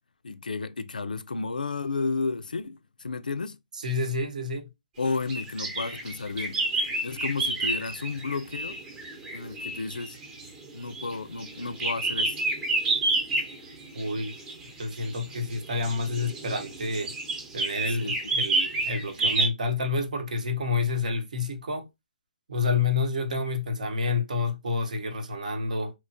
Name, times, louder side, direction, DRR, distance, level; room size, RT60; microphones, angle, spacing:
voice 1, 0.2-3.6 5.0-6.7 7.0-8.8 9.3-10.2 10.7-12.4 17.9-18.3, left 4 dB, 90° left, 0.3 m, -32 dB
voice 2, 3.7-4.7 13.9-14.3 14.8-17.1 17.5-21.9 22.5-25.9, left 3 dB, 65° right, 0.7 m, -29 dB
sound 1, 5.1-19.5, right 2 dB, 20° right, 0.7 m, -30 dB
3.0 x 2.2 x 2.6 m
hypercardioid pair, 140°, 4 cm